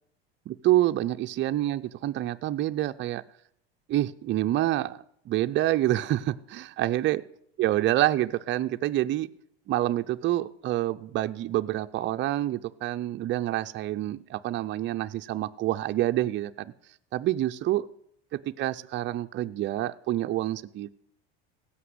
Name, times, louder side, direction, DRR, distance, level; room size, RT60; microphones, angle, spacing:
voice 1, 0.5-3.2 3.9-5.0 5.3-7.2 7.6-9.3 9.7-16.7 17.1-17.9 18.3-20.9, right 14 dB, 40° right, 8 dB, 0.5 m, -27 dB
16.0 x 6.0 x 7.9 m, 0.70 s
supercardioid pair, 100°, 30 cm